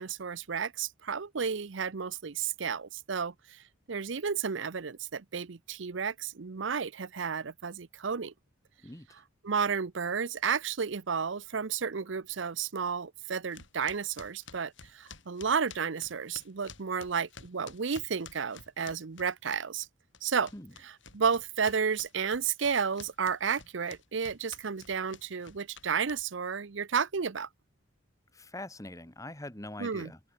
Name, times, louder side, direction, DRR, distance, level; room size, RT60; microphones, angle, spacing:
voice 1, 0.0-3.6 3.9-8.3 9.4-19.9 20.2-20.5 20.8-27.5 29.8-30.1, right 6 dB, 70° right, 0.7 m, -32 dB
sound 1, 13.5-19.9 20.1-26.5, left 6 dB, 70° left, 5.2 m, -51 dB
voice 2, 28.3-30.2, left 1 dB, 15° left, 1.8 m, -43 dB
open air
head